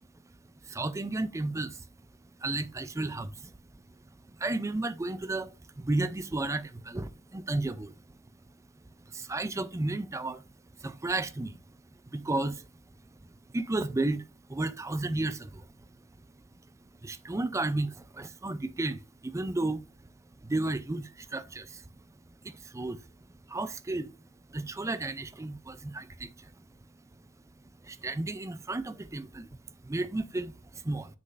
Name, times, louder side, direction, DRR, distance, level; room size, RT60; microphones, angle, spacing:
voice 1, 0.6-1.9 2.2-8.2 8.7-10.4 10.7-12.8 13.1-16.4 16.8-19.9 20.4-21.9 22.4-24.2 24.5-26.7 27.6-31.2, right 2 dB, 15° right, 0.4 m, -34 dB
7.8 x 6.3 x 2.5 m
head